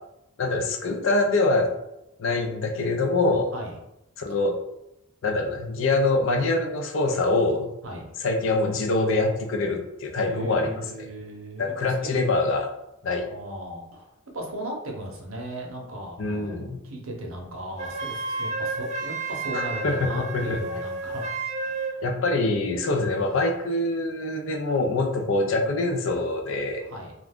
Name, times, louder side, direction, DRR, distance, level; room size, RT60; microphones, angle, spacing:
voice 1, 0.4-1.7 2.2-3.5 4.2-4.6 5.2-7.7 8.2-10.7 11.6-12.7 13.0-13.2 16.2-16.8 19.5-20.6 22.0-26.8, left 2 dB, 60° left, 2 dB, 0.4 m, -24 dB
voice 2, 10.2-12.1 13.3-21.4 21.7-22.0 23.2-23.4 26.8-27.1, right 1 dB, 65° right, 0 dB, 0.7 m, -37 dB
Wind instrument woodwind instrument, 17.8-22.0, right 3 dB, 30° right, 0.3 m, -31 dB
2.4 x 2.3 x 3.4 m, 0.86 s
head